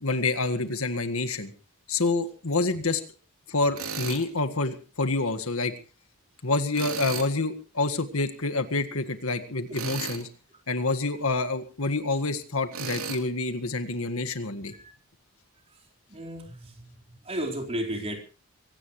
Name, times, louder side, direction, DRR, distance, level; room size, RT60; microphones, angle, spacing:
voice 1, 0.0-1.5 1.9-3.0 3.5-5.7 6.4-10.3 10.7-14.7, left 3 dB, 75° left, 8 dB, 1.8 m, -27 dB
Tools, 3.8-4.2 6.7-7.3 9.7-10.3 12.7-13.2, right 5 dB, 75° right, 3.3 m, -34 dB
voice 2, 16.1-18.2, right 1 dB, 30° right, 1 dB, 4.3 m, -34 dB
24.0 x 17.5 x 3.2 m, 0.35 s
head